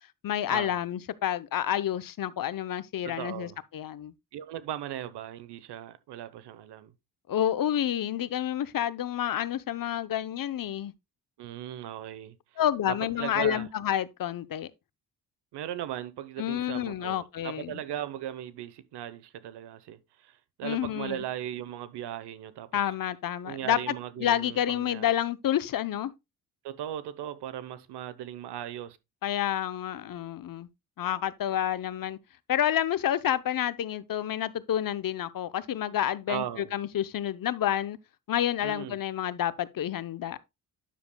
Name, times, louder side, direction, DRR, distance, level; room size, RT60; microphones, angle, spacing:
voice 1, 0.2-4.1 7.3-10.9 12.6-14.7 16.4-17.8 20.6-21.2 22.7-23.9 24.2-26.1 29.2-30.7 31.0-32.2 32.5-38.0 38.3-40.4, left 11 dB, 55° left, 0.8 m, -29 dB
voice 2, 3.0-3.6 4.3-6.9 11.4-12.3 12.9-13.7 15.5-17.2 17.4-22.8 23.4-25.1 26.6-29.0 36.3-36.7 38.6-39.0, right 11 dB, 85° right, 0.9 m, -38 dB
10.5 x 6.9 x 2.2 m
cardioid pair, 75°, 40 cm